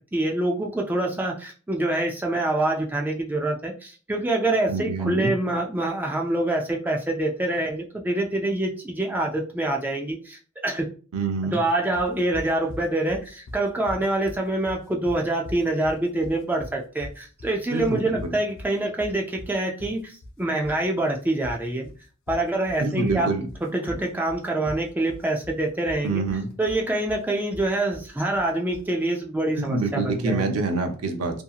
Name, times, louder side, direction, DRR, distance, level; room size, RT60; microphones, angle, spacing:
voice 1, 0.1-10.9 11.4-21.9 22.3-23.3 23.6-26.3 26.6-30.6, right 2 dB, 10° right, 0 dB, 0.3 m, -26 dB
voice 2, 4.7-5.3 11.1-11.6 17.7-18.4 22.8-23.5 26.0-26.5 29.5-31.4, right 3 dB, 85° right, 4 dB, 0.6 m, -26 dB
sound 1, 12.0-28.9, left 1 dB, 65° left, 0.6 m, -41 dB
2.7 x 2.7 x 2.3 m, 0.39 s
head